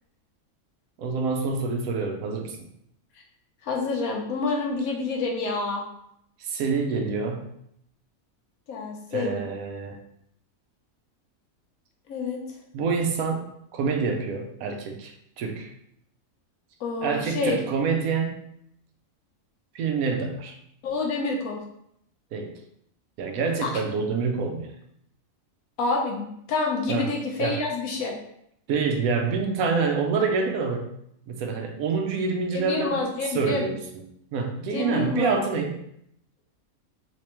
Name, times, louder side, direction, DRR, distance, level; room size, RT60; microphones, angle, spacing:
voice 1, 1.0-2.6 6.4-7.5 9.1-10.0 12.7-13.4 13.7-15.7 17.0-18.4 19.7-20.5 22.3-22.5 23.2-24.7 26.9-27.1 27.4-27.6 28.7-30.9 31.3-33.0 33.3-33.8 34.3-35.7, right 5 dB, 85° right, 4 dB, 1.1 m, -26 dB
voice 2, 3.6-5.8 8.7-9.4 12.1-12.4 16.8-17.6 20.8-21.6 23.6-23.7 25.8-28.1 32.5-33.7 34.7-35.3, left 3 dB, 80° left, 0 dB, 1.2 m, -28 dB
3.4 x 3.3 x 2.9 m, 0.74 s
omnidirectional pair, 1.5 m